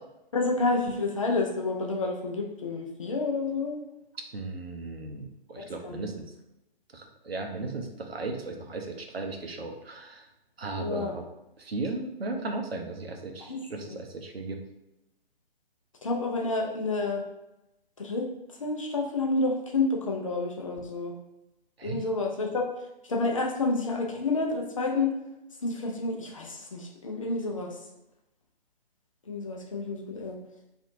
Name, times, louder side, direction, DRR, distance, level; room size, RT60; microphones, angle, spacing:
voice 1, 0.3-3.8 5.6-6.1 10.8-11.1 13.5-13.6 13.9-14.0 16.0-17.2 18.0-18.3 18.6-21.2 21.8-22.6 23.1-25.1 25.6-27.8 29.3-30.4, left 3 dB, 35° left, -1 dB, 0.4 m, -29 dB
voice 2, 4.3-6.3 6.9-10.3 10.6-11.3 11.6-14.6 21.8-22.1, right 3 dB, 80° right, 3 dB, 0.6 m, -36 dB
2.7 x 2.5 x 2.6 m, 0.90 s
figure-of-eight pair, 130°, 30 cm